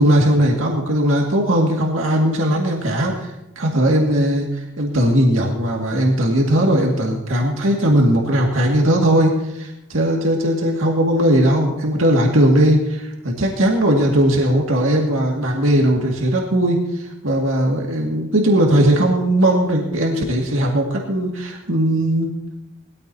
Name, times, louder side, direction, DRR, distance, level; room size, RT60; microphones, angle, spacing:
voice 1, 0.0-22.3, right 1 dB, 80° right, 0 dB, 2.1 m, -18 dB
20.5 x 14.0 x 2.8 m, 0.92 s
head